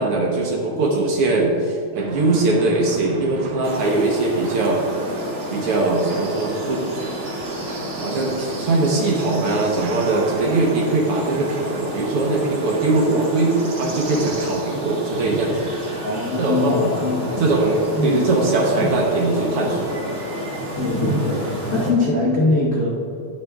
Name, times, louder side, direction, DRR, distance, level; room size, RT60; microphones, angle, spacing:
voice 1, 0.0-4.8 5.5-6.8 7.9-15.7 16.4-16.9 17.4-19.9, right 2 dB, 65° right, -1 dB, 1.6 m, -21 dB
sound 1, 2.0-14.5, right 4 dB, 85° right, 2.3 m, -35 dB
sound 2, 3.6-21.9, equal, 45° right, 2.7 m, -30 dB
voice 2, 16.0-17.4 18.0-18.3 20.8-22.9, left 2 dB, 75° left, -5 dB, 0.7 m, -22 dB
19.0 x 6.8 x 2.4 m, 2.7 s
omnidirectional pair, 3.4 m